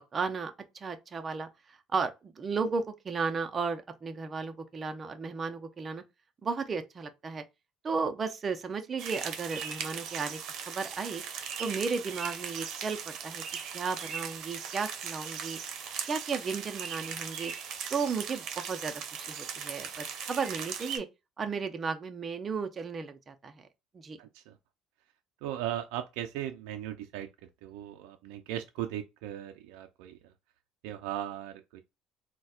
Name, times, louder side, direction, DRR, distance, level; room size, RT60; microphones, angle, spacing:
voice 1, 0.1-1.5 1.9-6.0 6.4-7.4 7.8-10.4 10.7-11.2 11.6-13.4 13.7-15.6 16.1-17.5 17.9-21.1 21.4-23.6 23.9-24.2, right 5 dB, 30° right, 0.6 m, -34 dB
sound 1, 9.0-21.0, right 7 dB, 60° right, 0.8 m, -39 dB
voice 2, 24.2-24.5 25.4-27.3 27.6-30.2 30.8-31.8, right 12 dB, 90° right, 0.3 m, -37 dB
4.0 x 2.2 x 2.4 m
cardioid pair, 125°, 0 cm